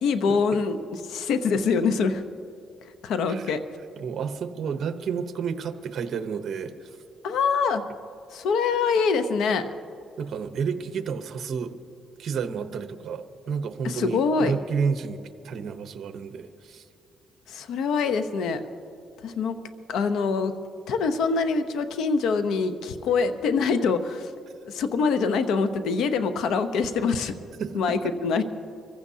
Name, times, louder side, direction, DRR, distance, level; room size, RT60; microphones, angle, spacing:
voice 1, 0.0-2.2 3.0-3.6 7.2-7.8 8.3-9.7 13.8-14.5 17.5-18.6 19.2-19.6 19.9-20.5 20.9-24.3 24.7-27.4 27.7-28.4, left 5 dB, 80° left, 10 dB, 0.8 m, -24 dB
voice 2, 4.0-6.7 10.2-11.7 12.2-15.2 15.4-16.8 27.6-27.7, right 6 dB, 60° right, 8 dB, 0.9 m, -30 dB
24.5 x 15.5 x 2.8 m, 2.5 s
cardioid pair, 90°, 0 cm